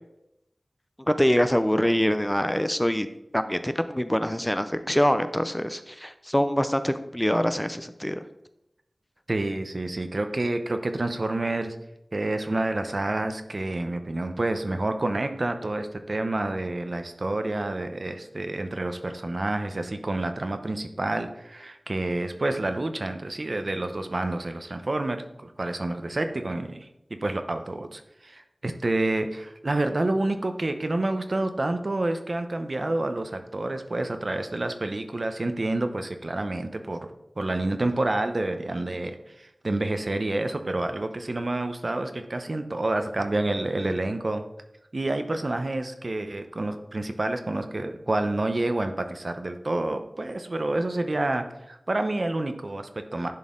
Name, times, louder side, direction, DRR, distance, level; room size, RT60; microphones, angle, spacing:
voice 1, 1.0-3.1 3.3-8.2, equal, 10° left, 10 dB, 0.4 m, -24 dB
voice 2, 9.3-11.8 12.1-26.9 27.2-37.1 37.4-44.4 44.9-53.3, right 2 dB, 55° right, 7 dB, 0.7 m, -28 dB
10.5 x 4.2 x 3.7 m, 0.85 s
wide cardioid pair, 65°, 0 cm